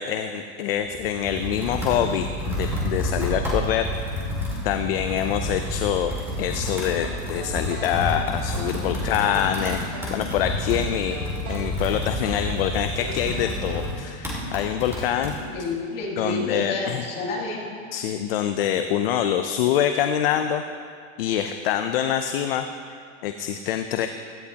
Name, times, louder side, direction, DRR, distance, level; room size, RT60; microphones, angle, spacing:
voice 1, 0.0-3.9 4.6-6.1 6.4-9.8 10.1-11.2 11.5-15.3 16.2-17.0 17.9-20.6 21.2-22.7 23.2-24.1, left 10 dB, 50° left, 7 dB, 0.5 m, -25 dB
Computer keyboard, 0.8-15.4, left 1 dB, 5° right, 2.2 m, -29 dB
sound 1, 7.4-8.8 9.2-10.2 11.1-12.6 13.0-14.0, right 2 dB, 35° right, 2.4 m, -38 dB
voice 2, 15.3-17.7, left 2 dB, 25° left, -5 dB, 2.6 m, -30 dB
16.5 x 14.0 x 2.9 m, 2.3 s
supercardioid pair, 175°, 38 cm